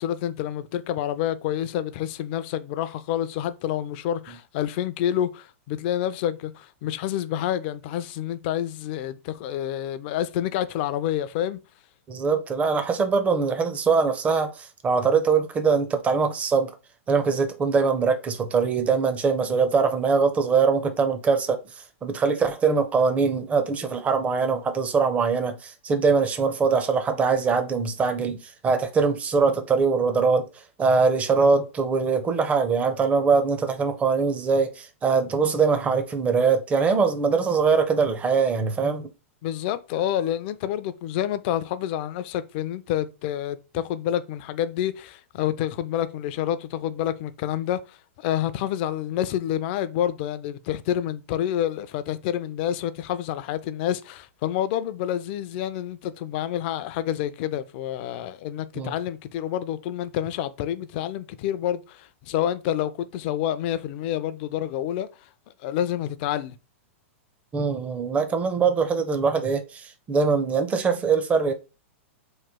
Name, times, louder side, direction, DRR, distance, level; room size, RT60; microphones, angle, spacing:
voice 1, 0.0-11.6 39.4-65.1 65.6-66.5, left 11 dB, 50° left, 0.4 m, -28 dB
voice 2, 12.1-16.7 17.1-21.6 22.0-30.5 30.8-39.1 58.8-58.9 67.5-71.5, right 5 dB, 20° right, 0.5 m, -22 dB
3.1 x 2.2 x 3.5 m
hypercardioid pair, 125°, 7 cm